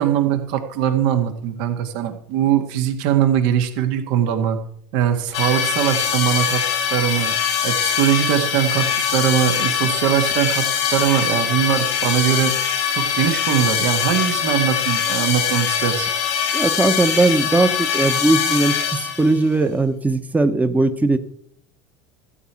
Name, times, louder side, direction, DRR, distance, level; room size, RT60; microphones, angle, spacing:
voice 1, 0.0-4.6 4.9-6.6 6.9-7.3 7.6-10.6 10.9-12.6 12.9-16.1, right 10 dB, 65° right, 6 dB, 1.8 m, -21 dB
sound 1, 5.3-19.4, left 8 dB, 85° left, 2.1 m, -22 dB
voice 2, 16.5-21.2, right 2 dB, 10° right, 9 dB, 1.0 m, -19 dB
13.5 x 4.7 x 8.8 m, 0.65 s
supercardioid pair, 105°, 14 cm